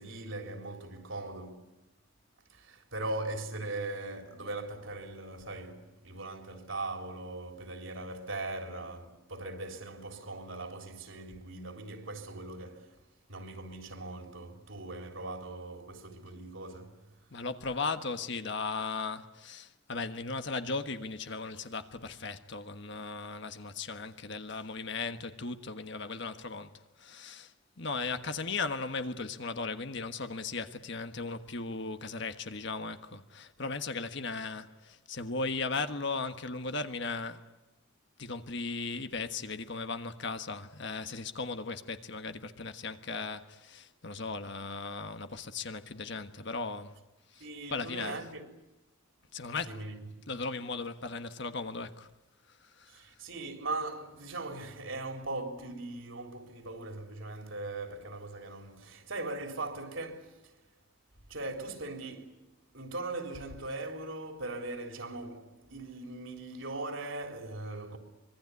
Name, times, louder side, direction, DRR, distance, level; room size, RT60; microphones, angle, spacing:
voice 1, 0.0-1.7 2.5-13.0 13.3-17.0 47.4-48.5 49.7-50.0 52.9-60.4 61.3-62.4 62.7-68.0, right 2 dB, 65° right, 3.8 m, -40 dB
voice 2, 17.3-37.4 38.2-47.0 47.3-48.3 49.3-49.8 50.3-52.1 52.8-53.0, left 4 dB, 55° left, 1.4 m, -37 dB
25.0 x 23.0 x 9.7 m
head